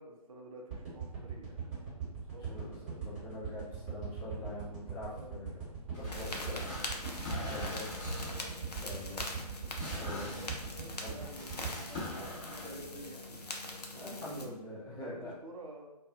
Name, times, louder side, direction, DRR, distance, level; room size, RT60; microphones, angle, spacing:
voice 1, 0.0-2.6 5.0-5.6 10.1-13.2 14.2-14.5 14.9-16.0, right 1 dB, 55° right, 1 dB, 0.5 m, -50 dB
sound 1, 0.7-13.0 13.4-13.5, right 6 dB, 20° right, 1.0 m, -41 dB
voice 2, 2.5-5.6 6.0-6.6 7.5-7.9 8.8-9.2 10.0-10.4 11.0-11.1 13.9-15.3, left 2 dB, 10° left, -10 dB, 0.5 m, -44 dB
sound 2, 5.9-12.7, left 1 dB, 25° left, 0.9 m, -44 dB
sound 3, 6.1-14.4, left 2 dB, 75° left, 0.5 m, -42 dB
2.3 x 2.3 x 2.4 m, 0.94 s
figure-of-eight pair, 135°, 21 cm